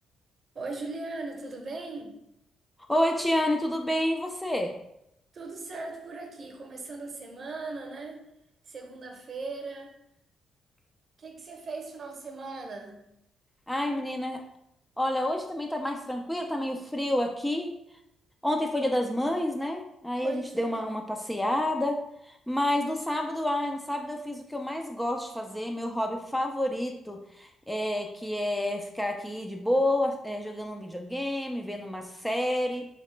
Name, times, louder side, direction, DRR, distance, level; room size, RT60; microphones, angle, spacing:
voice 1, 0.5-2.2 5.3-8.2 8.7-9.9 11.2-13.0 20.2-20.8, right 3 dB, 45° right, 3 dB, 0.7 m, -38 dB
voice 2, 2.9-4.8 13.7-14.4 15.0-17.8 18.4-32.9, left 1 dB, 5° left, 3 dB, 0.3 m, -29 dB
3.1 x 2.9 x 3.2 m, 0.80 s
cardioid pair, 90°, 0 cm